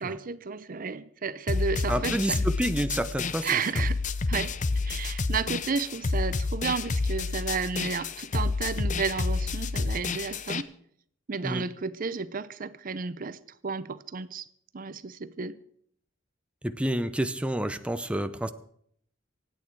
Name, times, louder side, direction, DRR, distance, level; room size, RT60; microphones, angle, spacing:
voice 1, 0.0-2.5 3.4-4.0 4.3-4.5 4.8-10.7 11.3-14.5 14.7-15.6, right 5 dB, 45° right, 0.6 m, -32 dB
sound 1, 1.5-10.6, left 3 dB, 40° left, 0.7 m, -29 dB
voice 2, 1.9-3.5 11.4-11.6 16.6-18.5, right 1 dB, 5° right, 0.6 m, -29 dB
25.0 x 9.0 x 4.7 m
head